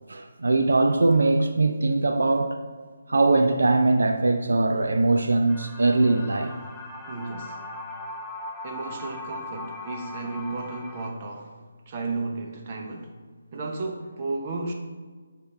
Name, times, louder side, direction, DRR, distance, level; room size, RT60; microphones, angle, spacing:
voice 1, 0.1-2.6 3.1-6.5, right 2 dB, 80° right, 6 dB, 0.5 m, -21 dB
sound 1, 5.5-11.1, left 2 dB, ahead, 0.7 m, -39 dB
voice 2, 7.0-7.6 8.6-11.6 11.9-13.1 13.5-14.7, right 3 dB, 35° right, 2 dB, 0.9 m, -33 dB
7.9 x 3.7 x 4.3 m, 1.5 s
figure-of-eight pair, 160°, 0 cm